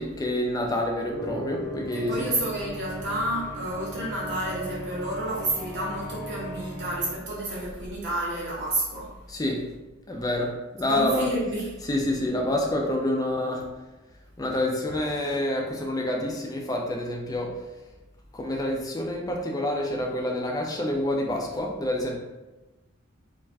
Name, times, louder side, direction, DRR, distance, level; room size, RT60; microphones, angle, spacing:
voice 1, 0.0-2.3 9.3-9.6 10.1-11.3 11.8-13.7 14.4-17.5 18.3-22.2, left 1 dB, 15° left, 0 dB, 0.3 m, -27 dB
sound 1, 1.1-7.1, equal, 15° right, 1.0 m, -38 dB
voice 2, 1.9-9.1 10.9-11.8, right 1 dB, 55° right, -5 dB, 0.6 m, -30 dB
2.4 x 2.1 x 3.3 m, 1.1 s
head